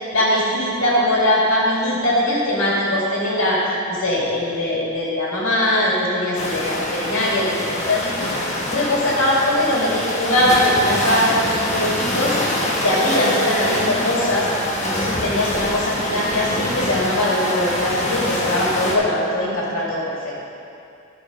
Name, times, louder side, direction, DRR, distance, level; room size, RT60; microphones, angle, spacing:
voice 1, 0.1-3.6 3.9-12.4 12.8-14.5 14.8-20.3, left 1 dB, 80° left, -6 dB, 2.2 m, -21 dB
sound 1, 6.3-19.0, left 1 dB, 35° left, 1.1 m, -25 dB
11.5 x 5.2 x 5.1 m, 2.5 s
head